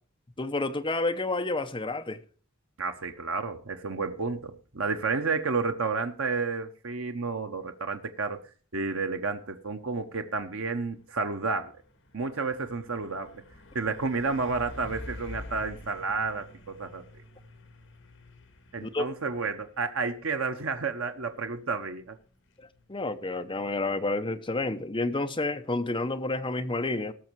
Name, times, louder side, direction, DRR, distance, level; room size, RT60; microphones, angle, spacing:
voice 1, 0.4-2.2 18.8-19.1 22.9-27.1, left 2 dB, 25° left, 0.8 m, -30 dB
voice 2, 2.8-8.4 8.7-11.7 12.1-13.3 13.7-17.0 18.7-22.2, right 4 dB, 80° right, 1.0 m, -31 dB
Truck, 10.4-24.7, left 1 dB, 65° left, 1.9 m, -49 dB
18.0 x 6.4 x 4.6 m
head